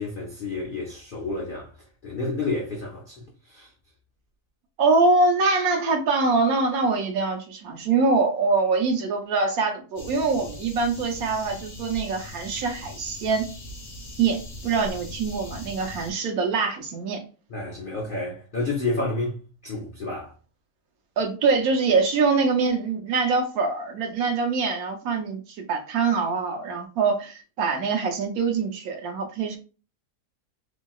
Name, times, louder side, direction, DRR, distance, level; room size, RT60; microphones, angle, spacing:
voice 1, 0.0-1.7 2.0-3.7 17.5-20.3, left 2 dB, 65° left, 0.5 m, -30 dB
voice 2, 4.8-13.5 14.2-17.2 21.2-29.6, right 4 dB, 70° right, 1.0 m, -24 dB
sound 1, 10.0-16.1, left 1 dB, 45° left, 1.2 m, -40 dB
3.0 x 2.6 x 2.3 m
omnidirectional pair, 1.7 m